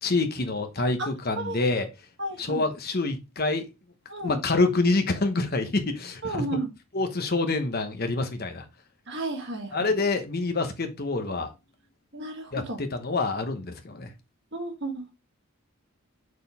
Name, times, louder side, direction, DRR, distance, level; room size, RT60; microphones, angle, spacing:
voice 1, 0.0-1.9 2.4-3.7 4.2-6.4 6.9-8.6 9.7-11.5 12.5-14.1, left 3 dB, 45° left, 1.1 m, -26 dB
voice 2, 2.2-2.6 4.1-4.4 6.2-6.7 9.1-9.9 12.1-12.8 14.5-15.1, right 2 dB, 55° right, 1.6 m, -33 dB
6.4 x 4.5 x 3.5 m
head